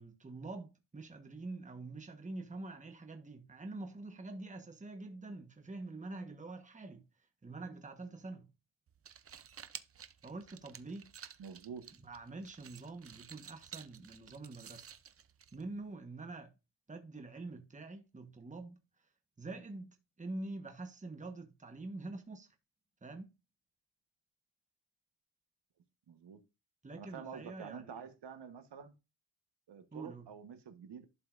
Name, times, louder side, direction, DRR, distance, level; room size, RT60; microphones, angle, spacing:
voice 1, 0.0-7.0 7.4-8.5 10.2-11.1 12.0-14.9 15.5-16.5 16.9-18.8 19.4-22.5 23.0-23.3 26.8-28.0 29.9-30.3, right 2 dB, 15° right, 1.3 m, -46 dB
sound 1, 8.9-15.9, right 8 dB, 30° right, 0.5 m, -53 dB
voice 2, 11.4-11.9 26.1-26.4 27.0-28.9 29.7-31.1, right 6 dB, 65° right, 1.4 m, -48 dB
11.5 x 5.5 x 2.6 m
wide cardioid pair, 135°, 44 cm